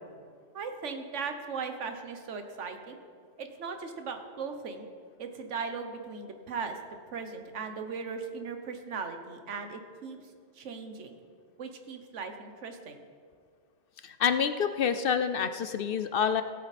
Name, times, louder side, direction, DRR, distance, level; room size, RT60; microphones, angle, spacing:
voice 1, 0.5-3.0 3.4-4.9 5.2-6.8 7.1-10.2 10.6-11.2 11.6-13.0, right 5 dB, 85° right, 6 dB, 1.3 m, -38 dB
voice 2, 14.0-16.4, left 7 dB, 60° left, 10 dB, 0.7 m, -27 dB
17.0 x 8.4 x 4.2 m, 2.1 s
omnidirectional pair, 1.2 m